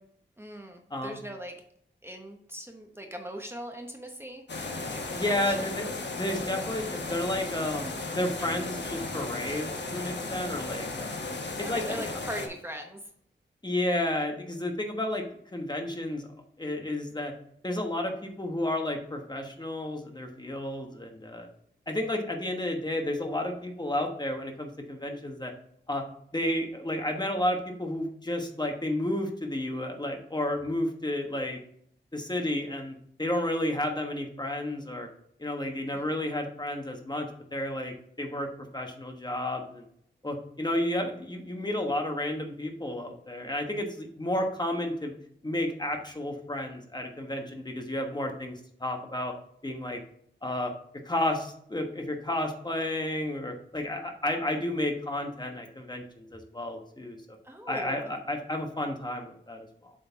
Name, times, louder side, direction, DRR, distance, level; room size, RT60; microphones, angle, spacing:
voice 1, 0.4-1.5 2.0-4.4 4.9-5.8 11.6-13.0 35.9-36.1 57.4-58.1, equal, 10° right, 2 dB, 1.0 m, -40 dB
voice 2, 0.9-1.2 5.1-5.9 6.1-11.2 11.6-12.0 13.6-15.2 15.5-16.3 16.6-17.3 17.6-21.5 21.9-25.5 25.9-26.0 26.3-31.6 32.1-35.1 35.4-38.5 38.7-39.8 40.2-45.1 45.4-49.3 49.6-50.0 50.4-50.7 51.0-57.2 57.7-59.9, left 1 dB, 20° left, 3 dB, 1.2 m, -31 dB
sound 1, 4.5-12.5, left 3 dB, 60° left, 1.1 m, -35 dB
7.6 x 3.9 x 4.5 m, 0.66 s
wide cardioid pair, 85°, 20 cm